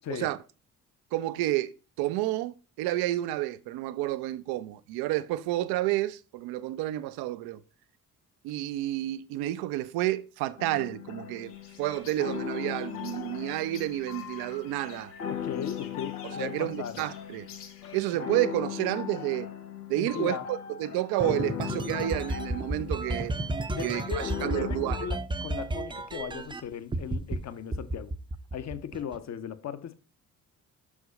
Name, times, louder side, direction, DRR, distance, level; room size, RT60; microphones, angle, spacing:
voice 1, 1.1-1.7 2.0-7.6 8.4-15.1 16.2-17.5 17.9-19.5 19.9-23.3 23.8-25.0, right 15 dB, 55° right, 0.6 m, -30 dB
sound 1, 10.6-25.0, left 9 dB, 85° left, 0.7 m, -38 dB
sound 2, 11.4-18.2, left 7 dB, 65° left, 1.5 m, -52 dB
voice 2, 15.3-17.0 19.9-20.5 23.7-28.1 28.5-30.0, left 8 dB, 35° left, 0.8 m, -37 dB
sound 3, 21.2-26.6 26.9-27.4 27.7-29.2, right 2 dB, 10° right, 0.6 m, -32 dB
6.2 x 4.9 x 5.2 m
figure-of-eight pair, 45°, 44 cm